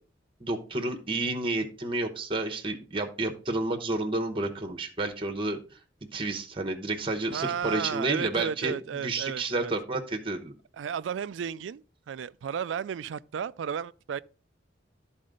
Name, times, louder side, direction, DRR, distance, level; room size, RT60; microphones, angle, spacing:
voice 1, 0.4-5.8 6.1-10.5, right 2 dB, 30° right, 0.9 m, -30 dB
voice 2, 7.3-9.7 10.8-14.2, right 7 dB, 85° right, 0.3 m, -33 dB
12.5 x 4.2 x 3.8 m
head